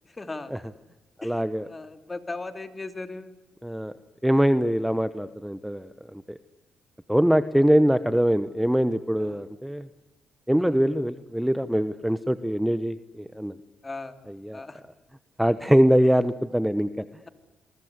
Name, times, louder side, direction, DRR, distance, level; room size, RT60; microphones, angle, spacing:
voice 1, 0.0-0.5 1.2-3.3 9.2-9.4 10.6-10.8 13.8-14.2 14.5-14.8, left 3 dB, 25° left, 9 dB, 2.7 m, -38 dB
voice 2, 1.2-1.7 3.6-3.9 4.2-6.4 7.1-9.9 10.5-13.5 14.4-14.6 15.4-17.0, equal, 5° right, 12 dB, 1.0 m, -23 dB
28.0 x 23.0 x 8.1 m, 1.0 s
cardioid pair, 90°, 0 cm